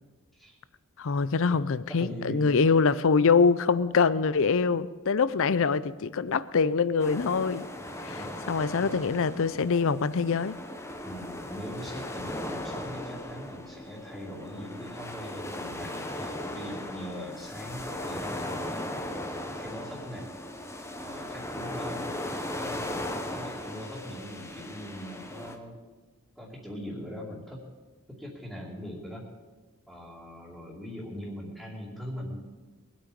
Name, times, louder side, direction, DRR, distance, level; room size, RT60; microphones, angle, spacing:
voice 1, 1.0-7.7 8.0-10.6, left 5 dB, 65° left, 17 dB, 0.5 m, -24 dB
voice 2, 1.9-2.7 8.1-8.3 8.8-8.9 11.0-19.2 19.6-20.3 20.9-23.0 23.3-25.8 26.4-27.6 28.2-29.2 29.9-32.4, equal, ahead, -8 dB, 2.6 m, -41 dB
sound 1, 7.0-25.5, left 1 dB, 15° left, 1.1 m, -37 dB
22.5 x 8.8 x 5.2 m, 1.3 s
head